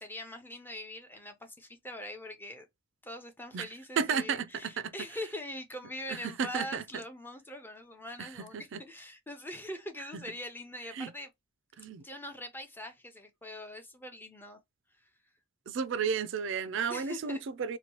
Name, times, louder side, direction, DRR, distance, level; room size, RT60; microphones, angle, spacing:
voice 1, 0.0-2.7 3.0-11.3 12.0-14.6 16.9-17.4, left 1 dB, 10° left, 0.6 m, -43 dB
voice 2, 4.0-4.9 6.1-6.8 8.2-8.8 11.0-11.1 11.8-12.0 15.7-17.8, right 6 dB, 65° right, 0.4 m, -33 dB
2.9 x 2.2 x 2.9 m
head